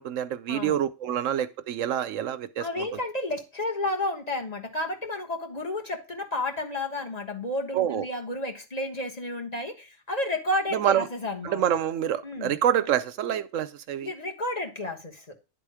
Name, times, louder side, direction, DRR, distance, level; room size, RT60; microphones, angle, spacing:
voice 1, 0.0-2.9 7.7-8.1 10.7-11.1 11.4-14.1, right 10 dB, 80° right, 1.0 m, -27 dB
voice 2, 2.6-11.6 12.2-12.6 14.0-15.4, left 1 dB, 30° left, 1.4 m, -31 dB
10.5 x 3.9 x 4.9 m
omnidirectional pair, 1.3 m